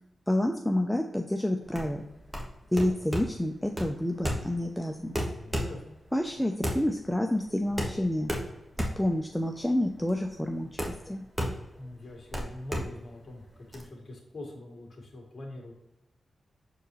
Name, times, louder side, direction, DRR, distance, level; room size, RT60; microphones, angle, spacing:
voice 1, 0.3-2.0 2.7-5.1 6.1-8.3 8.8-11.3, left 1 dB, 5° left, 4 dB, 0.4 m, -29 dB
sound 1, 1.6-13.8, equal, 15° right, 1.3 m, -35 dB
voice 2, 5.4-6.0 11.8-15.7, left 1 dB, 40° left, -1 dB, 2.1 m, -43 dB
6.6 x 4.5 x 3.1 m, 0.92 s
wide cardioid pair, 100°, 0 cm